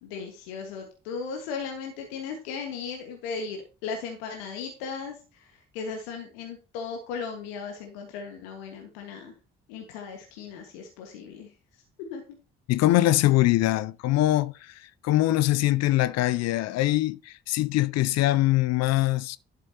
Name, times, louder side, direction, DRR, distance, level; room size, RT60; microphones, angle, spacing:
voice 1, 0.0-9.3 9.7-11.5 12.1-12.2, left 5 dB, 75° left, 1.7 m, -37 dB
voice 2, 12.7-19.4, left 16 dB, 60° left, 0.6 m, -23 dB
11.5 x 7.1 x 2.9 m
figure-of-eight pair, 45°, 30 cm